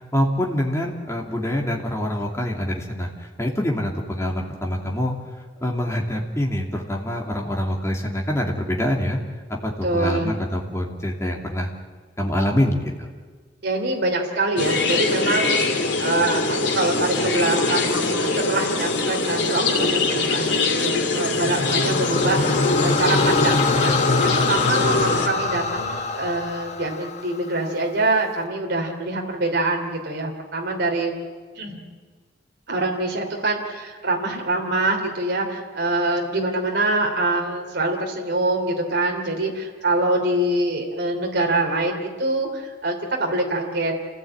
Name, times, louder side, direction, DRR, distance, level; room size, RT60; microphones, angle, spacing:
voice 1, 0.1-3.1 3.4-5.1 5.6-9.2 9.5-11.7 12.2-13.1, left 1 dB, 15° left, 0 dB, 2.8 m, -25 dB
voice 2, 9.8-10.3 13.6-15.7 16.0-23.9 24.2-31.1 31.6-31.8 32.7-43.9, right 2 dB, 60° right, 1 dB, 3.0 m, -24 dB
sound 1, 14.6-25.3, left 3 dB, 65° left, 2.8 m, -23 dB
sound 2, 21.3-27.6, left 3 dB, 35° left, 1.2 m, -24 dB
27.5 x 16.0 x 8.8 m, 1.4 s
head